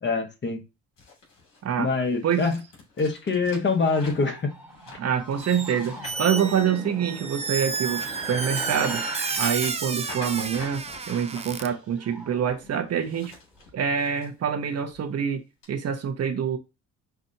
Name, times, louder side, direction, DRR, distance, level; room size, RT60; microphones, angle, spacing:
voice 1, 0.0-0.6 1.8-2.6 3.0-4.5, left 4 dB, 35° left, 1.3 m, -25 dB
sound 1, 1.0-7.1 7.6-11.6 12.9-14.3 14.7-15.0 15.6-15.7, left 3 dB, 70° left, 2.6 m, -46 dB
sound 2, 3.8-12.9 13.2-13.7, right 1 dB, 5° right, 1.4 m, -40 dB
voice 2, 5.0-9.0 9.4-13.3 13.7-15.4 15.7-16.6, right 8 dB, 50° right, 0.9 m, -26 dB
Squeak, 5.4-5.7 6.0-11.7, right 5 dB, 20° right, 0.5 m, -31 dB
5.7 x 2.5 x 2.7 m
supercardioid pair, 80°, 34 cm